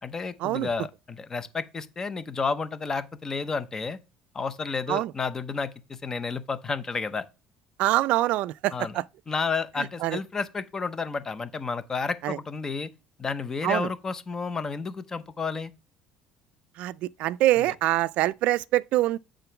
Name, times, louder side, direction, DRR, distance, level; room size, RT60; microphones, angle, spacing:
voice 1, 0.0-4.0 4.3-7.2 8.7-9.0 9.3-12.9 13.2-15.7 17.5-17.7, left 4 dB, 20° left, 0.8 m, -31 dB
voice 2, 7.8-9.0 9.8-10.2 12.2-12.4 13.6-13.9 16.8-19.2, right 16 dB, 65° right, 0.3 m, -25 dB
9.0 x 3.8 x 5.7 m
cardioid pair, 130°, 2 cm